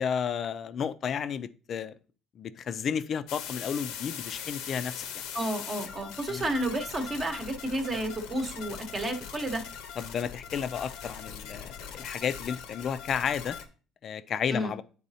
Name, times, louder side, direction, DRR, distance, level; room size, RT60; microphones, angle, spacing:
voice 1, 0.0-1.9 2.4-5.1 6.3-6.5 10.0-13.6 14.0-14.8, left 7 dB, 45° left, 0.4 m, -32 dB
sound 1, 3.3-13.7, left 8 dB, 85° left, 0.8 m, -41 dB
voice 2, 5.3-9.6 14.5-14.7, right 1 dB, 25° right, 1.0 m, -31 dB
9.9 x 4.0 x 2.7 m
cardioid pair, 125°, 0 cm